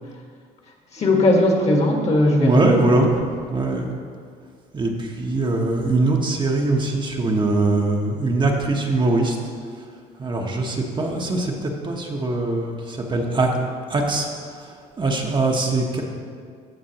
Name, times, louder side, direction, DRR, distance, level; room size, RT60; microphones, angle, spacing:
voice 1, 0.9-3.0, left 1 dB, 40° left, 1 dB, 1.6 m, -18 dB
voice 2, 2.4-3.1 3.5-3.9 4.7-9.4 10.2-13.5 13.9-14.3 14.6-16.0, right 2 dB, 30° right, 1 dB, 1.0 m, -22 dB
15.5 x 5.9 x 2.9 m, 2.1 s
cardioid pair, 110°, 17 cm